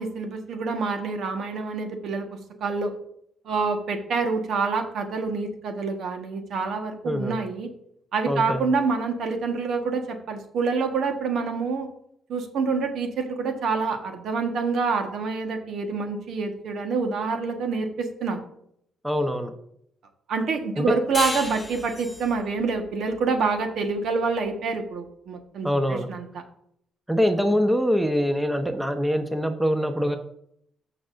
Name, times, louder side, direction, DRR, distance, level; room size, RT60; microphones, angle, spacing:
voice 1, 0.0-2.3 2.6-2.9 3.4-7.7 8.1-11.9 12.3-18.4 20.3-26.4, right 4 dB, 70° right, 5 dB, 1.4 m, -27 dB
voice 2, 7.0-7.4 8.3-8.6 19.0-19.5 20.8-20.9 25.6-26.1 27.1-30.2, equal, 5° right, 6 dB, 1.0 m, -24 dB
sound 1, 21.1-24.3, left 3 dB, 25° left, 1.0 m, -35 dB
14.5 x 5.7 x 2.6 m, 0.70 s
cardioid pair, 90°, 0 cm